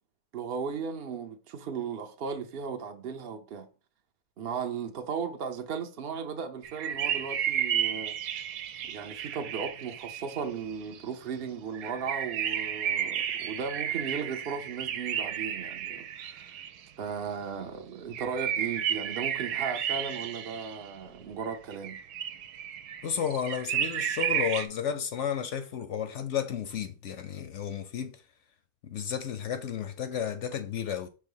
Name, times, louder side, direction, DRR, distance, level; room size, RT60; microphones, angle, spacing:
voice 1, 0.3-3.7 4.4-8.2 8.8-16.6 17.0-22.0, right 6 dB, 55° right, 0.6 m, -36 dB
sound 1, 6.6-11.0 11.7-16.8 18.1-20.9 21.4-24.7, right 9 dB, 75° right, 1.1 m, -32 dB
voice 2, 23.0-28.2 28.8-31.1, left 8 dB, 65° left, 0.8 m, -32 dB
5.5 x 3.4 x 5.4 m
omnidirectional pair, 1.7 m